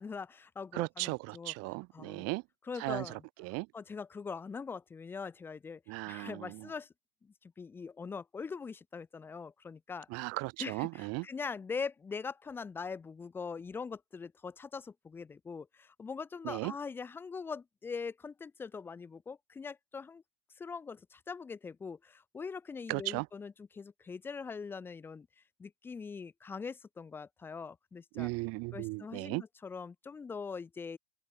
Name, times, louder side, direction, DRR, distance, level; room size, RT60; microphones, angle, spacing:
voice 1, 0.0-1.5 1.9-2.3 2.6-5.8 6.1-6.9 7.2-10.2 10.6-20.2 20.6-25.3 25.6-28.3 28.7-31.0, left 5 dB, 5° left, 0.3 m, -42 dB
voice 2, 0.7-2.4 2.8-3.1 3.4-3.7 5.9-6.7 10.1-11.2 16.4-16.7 22.9-23.3 28.1-29.4, right 27 dB, 45° right, 1.5 m, -36 dB
open air
supercardioid pair, 130°, 35 cm